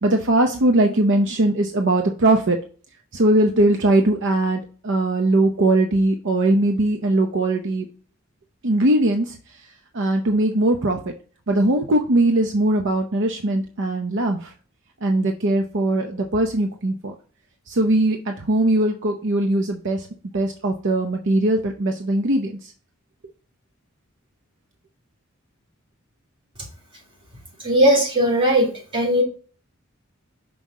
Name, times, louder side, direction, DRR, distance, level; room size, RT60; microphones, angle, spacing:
voice 1, 0.0-2.6 3.1-7.9 8.6-9.4 9.9-11.0 11.5-14.5 15.0-17.1 17.7-20.1 20.3-22.7, right 1 dB, 60° right, 5 dB, 0.7 m, -20 dB
voice 2, 27.6-29.2, equal, 25° right, -3 dB, 3.0 m, -18 dB
6.1 x 5.5 x 3.7 m, 0.40 s
head